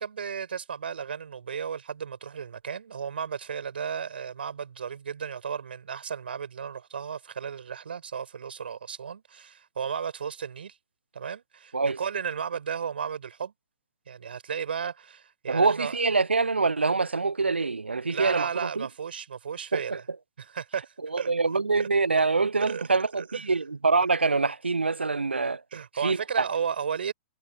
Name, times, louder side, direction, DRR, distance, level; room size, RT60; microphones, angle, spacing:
voice 1, 0.0-10.7 11.1-13.5 14.1-16.0 18.1-20.0 20.4-21.3 21.8-21.9 22.6-22.8 23.2-23.4 25.7-27.1, right 7 dB, 70° right, 5.7 m, -34 dB
voice 2, 15.5-18.9 19.7-20.0 21.1-25.6 26.0-26.2, right 4 dB, 85° right, 0.7 m, -25 dB
figure-of-eight pair, 110°, 6 cm